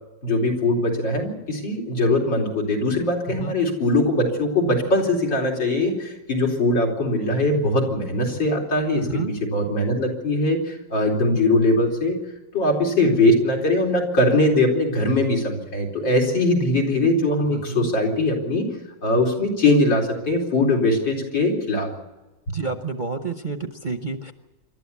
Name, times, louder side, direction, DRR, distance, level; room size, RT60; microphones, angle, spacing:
voice 1, 0.2-9.0 9.4-12.2 12.5-18.7 19.0-21.9 22.5-22.6, left 2 dB, 85° left, 0 dB, 4.9 m, -21 dB
voice 2, 3.3-3.6 9.0-9.3 17.5-17.9 22.5-24.3, right 4 dB, 40° right, 6 dB, 0.8 m, -29 dB
27.0 x 12.5 x 8.3 m, 1.1 s
omnidirectional pair, 2.0 m